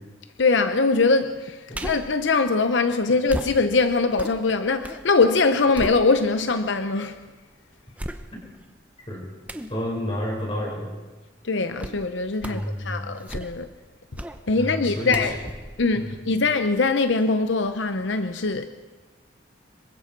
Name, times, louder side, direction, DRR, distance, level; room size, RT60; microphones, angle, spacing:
voice 1, 0.4-7.2 11.4-13.7 14.5-15.4 15.8-18.7, left 3 dB, 75° left, 0.8 m, -22 dB
sound 1, 1.7-2.2 3.3-5.1 5.4-6.5 7.0-7.1 8.0-8.6 9.5-9.8 11.8-12.1 12.4-12.7 13.1-13.8 14.1-14.4 15.1-16.8 17.2-17.3, right 1 dB, 10° right, 0.9 m, -36 dB
voice 2, 9.7-10.9 12.5-13.1 14.6-15.3 15.9-16.2, equal, 30° left, 5.4 m, -30 dB
26.0 x 23.0 x 4.6 m
head